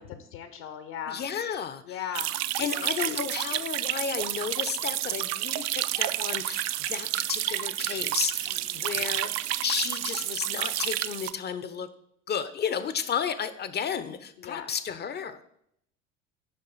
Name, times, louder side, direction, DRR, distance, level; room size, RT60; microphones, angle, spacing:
voice 1, 0.0-1.2 1.8-2.3 2.7-3.2 8.5-8.9 14.4-14.7, left 9 dB, 65° left, 9 dB, 0.8 m, -39 dB
voice 2, 1.1-2.0 2.6-9.3 9.6-11.9 12.3-15.4, left 7 dB, 30° left, 13 dB, 0.5 m, -32 dB
sound 1, 2.1-11.3, right 14 dB, 45° right, 0.4 m, -30 dB
sound 2, 3.5-11.0, right 9 dB, 70° right, 0.8 m, -50 dB
8.8 x 5.4 x 3.9 m, 0.73 s
figure-of-eight pair, 65°, 38 cm